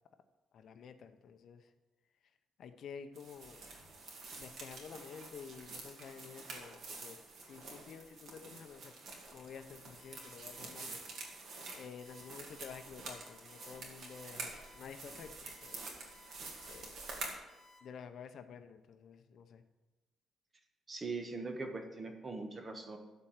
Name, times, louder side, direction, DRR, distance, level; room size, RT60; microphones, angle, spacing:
voice 1, 0.5-1.7 2.6-3.6 4.4-7.2 7.5-8.9 9.3-11.0 11.7-15.3 15.6-15.8 16.7-17.0 17.8-19.6, left 6 dB, 60° left, 9 dB, 0.7 m, -50 dB
sound 1, 3.1-17.4, right 3 dB, 60° right, 2.3 m, -48 dB
Alarm, 10.0-17.8, left 2 dB, 25° left, 3.2 m, -62 dB
voice 2, 20.9-23.0, right 3 dB, 25° right, 5 dB, 1.2 m, -41 dB
13.0 x 4.5 x 7.3 m, 1.1 s
cardioid pair, 140°, 0 cm